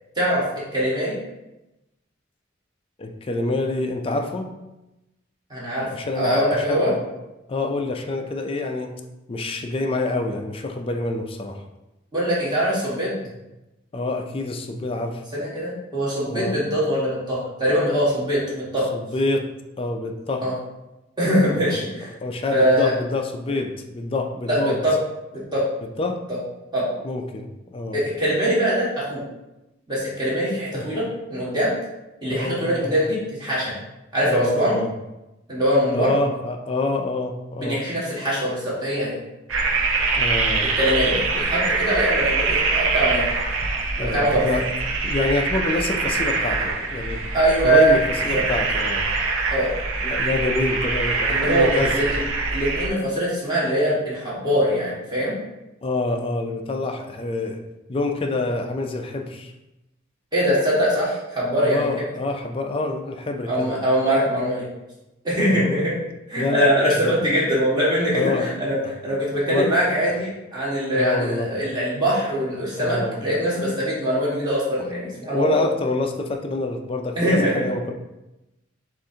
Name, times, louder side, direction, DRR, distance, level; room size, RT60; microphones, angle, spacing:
voice 1, 0.7-1.2 5.5-5.9 6.1-6.9 12.1-13.1 15.3-18.9 20.4-20.5 21.2-22.1 22.5-22.9 24.5-24.9 25.5-25.6 26.7-26.9 27.9-29.2 29.9-31.7 32.2-33.7 34.1-34.8 35.5-36.1 37.6-39.1 40.8-43.2 44.0-44.4 47.3-47.9 48.3-48.4 49.5-49.7 51.3-52.2 52.5-55.4 60.3-61.9 63.5-64.7 65.2-65.9 66.3-68.8 69.0-75.6 77.1-77.6, equal, 20° right, -8 dB, 1.4 m, -22 dB
voice 2, 3.0-4.5 5.9-7.0 7.5-9.0 9.3-11.6 13.2-13.3 13.9-15.2 16.3-16.6 18.9-19.5 19.8-20.5 21.5-21.8 22.2-24.8 26.0-26.2 27.0-28.0 30.7-30.8 32.3-32.8 34.2-34.9 35.9-37.8 40.1-40.7 44.0-44.6 45.0-47.2 47.6-49.1 50.0-51.9 55.8-57.6 57.9-59.5 61.6-63.8 65.5-65.8 66.4-67.1 68.1-68.5 69.4-69.7 70.9-71.5 72.8-73.2 75.3-77.9, left 2 dB, 30° left, 4 dB, 0.4 m, -26 dB
sound 1, 39.5-52.9, right 3 dB, 80° right, 0.6 m, -24 dB
7.1 x 2.5 x 2.7 m, 0.97 s
head